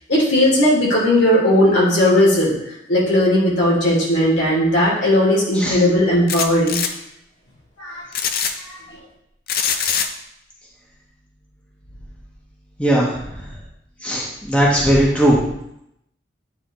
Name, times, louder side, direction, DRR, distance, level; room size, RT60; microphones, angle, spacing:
voice 1, 0.1-2.5 2.9-6.8 7.8-8.0 8.6-8.8, left 1 dB, 75° left, -5 dB, 2.6 m, -17 dB
sound 1, 6.3-6.9 8.1-8.5 9.5-10.1, left 7 dB, 55° left, 0.5 m, -22 dB
voice 2, 12.8-13.1 14.0-15.4, right 1 dB, 5° left, -5 dB, 1.1 m, -17 dB
9.3 x 4.0 x 3.0 m, 0.79 s
head